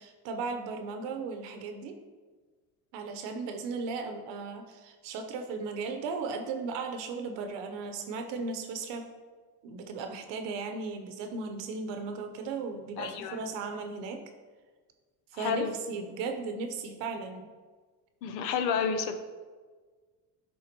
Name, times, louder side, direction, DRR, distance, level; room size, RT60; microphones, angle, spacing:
voice 1, 0.0-2.0 2.9-9.1 9.6-14.2 15.3-17.5, right 4 dB, 60° right, 6 dB, 0.8 m, -36 dB
voice 2, 13.0-13.4 15.3-15.7 18.2-19.1, left 6 dB, 85° left, 8 dB, 0.8 m, -30 dB
10.5 x 3.7 x 2.9 m, 1.4 s
supercardioid pair, 95°, 48 cm